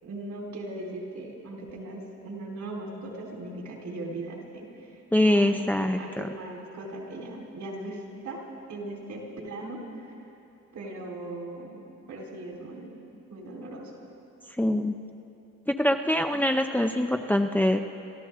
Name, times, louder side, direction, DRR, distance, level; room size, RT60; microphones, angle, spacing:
voice 1, 0.0-4.7 5.2-5.6 6.0-8.4 8.7-10.1 10.7-12.9 13.3-13.9, right 2 dB, 70° right, -2 dB, 4.1 m, -39 dB
voice 2, 5.1-6.3 14.6-15.0 15.7-17.8, left 1 dB, 5° left, 5 dB, 0.6 m, -24 dB
28.0 x 13.5 x 3.8 m, 2.7 s
cardioid pair, 90°, 30 cm